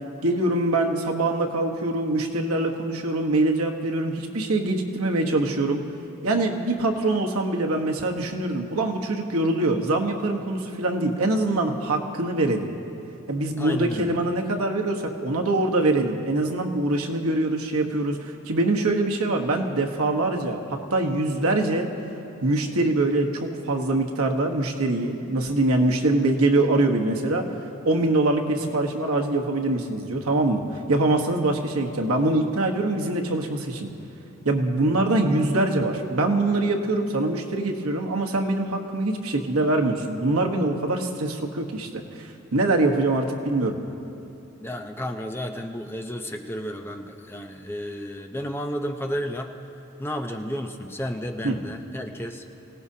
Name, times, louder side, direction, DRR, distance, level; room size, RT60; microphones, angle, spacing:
voice 1, 0.2-5.8 6.2-12.7 13.3-20.6 20.9-21.9 22.4-27.5 27.8-30.6 30.9-33.9 34.4-43.8 51.4-51.6, right 2 dB, 90° right, 2 dB, 1.2 m, -24 dB
voice 2, 13.6-14.2 44.6-49.5 50.0-52.4, equal, 10° left, 4 dB, 0.6 m, -32 dB
25.0 x 17.5 x 2.8 m, 2.8 s
head